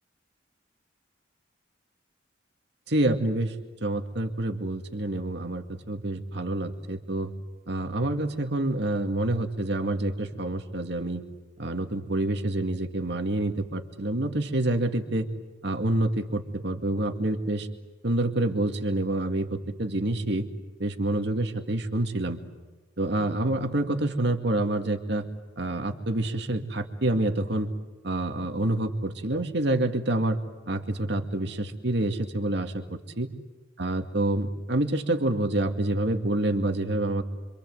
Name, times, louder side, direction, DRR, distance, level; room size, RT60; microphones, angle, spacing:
voice 1, 2.9-3.6 3.8-7.3 7.7-11.2 11.6-15.3 15.6-17.7 18.0-20.5 20.8-22.4 23.0-25.3 25.6-27.7 28.0-30.4 30.7-33.3 33.8-37.2, right 1 dB, 60° right, 6 dB, 2.2 m, -27 dB
27.0 x 26.0 x 7.9 m, 1.2 s
head